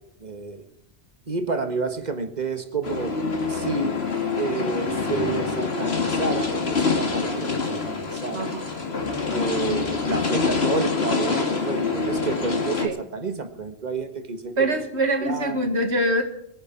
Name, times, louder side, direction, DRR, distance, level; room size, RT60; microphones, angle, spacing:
voice 1, 0.2-0.6 1.3-3.2 3.5-4.1 4.3-8.5 9.3-14.8 15.2-15.7, right 4 dB, 40° right, 8 dB, 1.7 m, -30 dB
sound 1, 2.8-12.9, left 4 dB, 65° left, 2.3 m, -26 dB
voice 2, 8.3-8.6 12.8-13.0 14.6-16.2, right 1 dB, 80° right, 6 dB, 2.1 m, -24 dB
23.0 x 10.0 x 4.6 m, 0.80 s
omnidirectional pair, 1.1 m